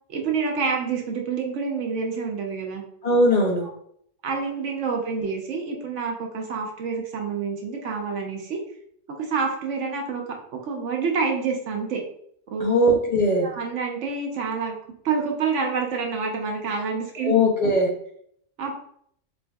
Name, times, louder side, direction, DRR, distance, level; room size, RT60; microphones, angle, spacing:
voice 1, 0.1-2.8 3.6-3.7 4.2-8.6 9.1-12.0 12.5-12.8 13.4-14.7 15.0-17.3 18.6-18.7, right 5 dB, 75° right, 2 dB, 1.1 m, -28 dB
voice 2, 3.0-3.7 12.6-13.5 17.2-17.9, left 1 dB, 40° left, 0 dB, 0.6 m, -19 dB
4.4 x 2.6 x 2.3 m, 0.67 s
omnidirectional pair, 1.3 m